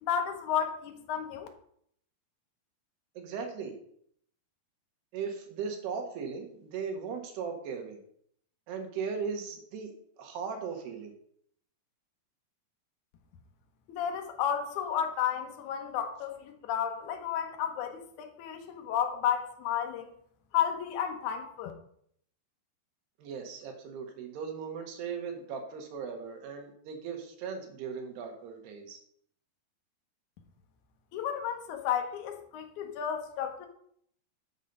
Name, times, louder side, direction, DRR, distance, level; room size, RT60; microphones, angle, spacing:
voice 1, 0.0-1.5 13.9-20.1 20.5-21.7 31.1-33.7, left 9 dB, 70° left, 4 dB, 1.9 m, -32 dB
voice 2, 3.2-3.8 5.1-8.0 8.7-9.9 10.2-11.1 23.2-29.0, right 6 dB, 80° right, 3 dB, 3.4 m, -38 dB
7.5 x 6.5 x 5.4 m, 0.67 s
omnidirectional pair, 4.7 m